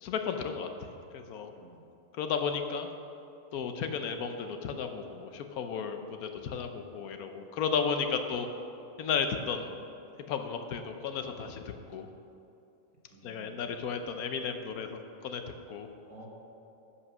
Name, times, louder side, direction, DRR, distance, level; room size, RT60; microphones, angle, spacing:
voice 1, 0.0-0.7 1.1-1.5 2.2-2.9 3.5-8.5 9.0-9.7 10.3-12.1 13.2-15.4 15.7-15.9, left 6 dB, 80° left, 7 dB, 1.2 m, -34 dB
voice 2, 1.5-1.9 13.1-13.8 16.0-16.3, right 2 dB, 65° right, -3 dB, 2.0 m, -53 dB
11.0 x 5.8 x 6.1 m, 2.7 s
omnidirectional pair, 1.5 m